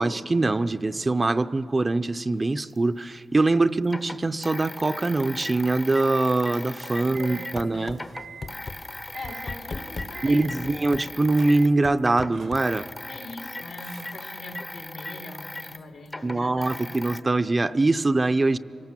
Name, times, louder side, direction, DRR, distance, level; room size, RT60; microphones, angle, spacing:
voice 1, 0.0-8.0 10.2-12.9 16.2-18.6, right 2 dB, 30° right, 11 dB, 0.5 m, -23 dB
sound 1, 2.8-2.9 3.8-7.7 7.9-11.7 12.0-17.2, left 2 dB, 20° left, 0.7 m, -38 dB
sound 2, 5.9-11.0 11.3-11.9 12.3-13.1 13.4-14.3 15.3-15.4, right 6 dB, 75° right, 1.0 m, -47 dB
voice 2, 7.0-8.0 9.1-10.7 13.1-17.1, left 2 dB, 80° left, 2 dB, 3.2 m, -41 dB
sound 3, 7.6-8.0 8.4-8.8 9.2-10.1 10.6-11.1 11.8-12.7, left 3 dB, 50° left, 1.1 m, -36 dB
25.0 x 18.0 x 7.5 m, 2.8 s
cardioid pair, 85°, 0 cm